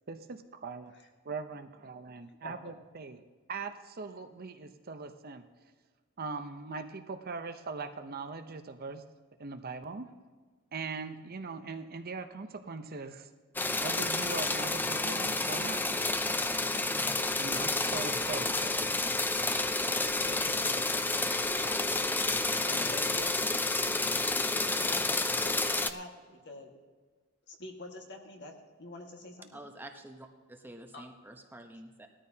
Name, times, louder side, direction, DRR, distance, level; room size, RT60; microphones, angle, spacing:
voice 1, 0.1-0.9 1.2-3.2 3.5-5.4 6.2-9.0 9.4-10.1 10.7-13.3 13.8-15.8 17.4-18.8, right 4 dB, 45° right, 8 dB, 0.7 m, -40 dB
voice 2, 2.4-2.7 20.2-22.0 22.5-23.8 24.4-26.7 27.5-28.5 28.8-29.6 30.9-31.0, left 2 dB, 55° left, 2 dB, 1.7 m, -46 dB
sound 1, 13.6-25.9, left 2 dB, 10° left, 0.4 m, -30 dB
voice 3, 29.5-32.1, right 1 dB, 10° right, 4 dB, 0.9 m, -48 dB
19.0 x 13.5 x 2.8 m, 1.5 s
head